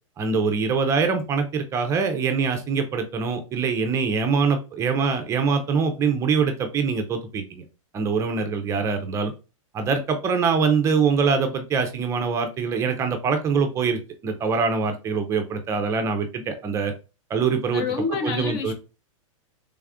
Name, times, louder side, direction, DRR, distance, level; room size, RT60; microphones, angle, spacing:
voice 1, 0.2-7.6 7.9-9.3 9.7-16.9 17.3-17.8 18.2-18.7, right 5 dB, 15° right, 0.4 m, -24 dB
voice 2, 17.7-18.7, left 5 dB, 45° left, 0.7 m, -27 dB
3.4 x 2.3 x 3.4 m
hypercardioid pair, 150°, 17 cm